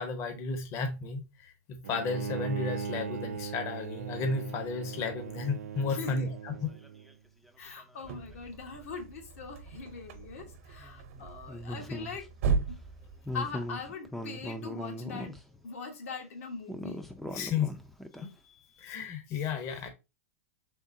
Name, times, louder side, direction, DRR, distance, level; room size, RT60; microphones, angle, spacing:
voice 1, 0.0-1.5 1.9-6.5 17.3-17.7 18.1-19.9, left 4 dB, 40° left, 6 dB, 0.8 m, -33 dB
Bowed string instrument, 1.8-7.1, right 6 dB, 90° right, 0.3 m, -39 dB
voice 2, 5.8-6.3 7.6-12.3 12.7-12.8 13.3-15.4 15.6-17.0, left 4 dB, 70° left, 3 dB, 1.2 m, -41 dB
sound 1, 5.8-5.9 6.5-7.1 7.5-7.6 7.8-8.1 10.8-12.3 13.3-15.6 16.7-18.2, left 1 dB, 5° left, 0.4 m, -39 dB
sound 2, 8.0-13.9, right 5 dB, 60° right, 0.9 m, -36 dB
3.7 x 3.3 x 2.6 m, 0.25 s
hypercardioid pair, 115°, 8 cm